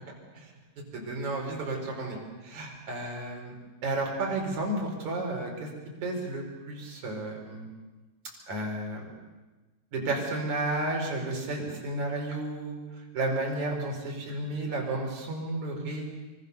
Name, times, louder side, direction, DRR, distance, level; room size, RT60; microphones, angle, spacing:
voice 1, 0.9-3.6 3.8-5.7 6.0-7.7 8.5-9.1 9.9-12.8 13.1-16.0, right 2 dB, 40° right, 0 dB, 5.9 m, -32 dB
26.0 x 24.5 x 6.9 m, 1.2 s
omnidirectional pair, 5.6 m